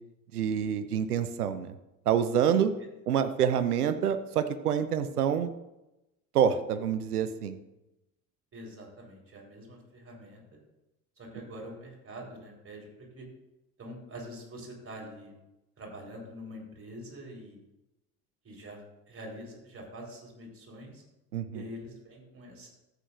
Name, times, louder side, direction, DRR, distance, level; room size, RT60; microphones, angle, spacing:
voice 1, 0.3-1.7 2.1-2.7 3.1-5.5 6.3-7.6 21.3-21.6, right 8 dB, 85° right, 11 dB, 0.7 m, -27 dB
voice 2, 8.5-10.4 11.2-13.3 13.8-15.3 15.8-17.6 18.4-21.0 21.5-22.7, equal, 30° right, -1 dB, 3.7 m, -45 dB
13.5 x 8.2 x 2.5 m, 0.94 s
figure-of-eight pair, 60°, 44 cm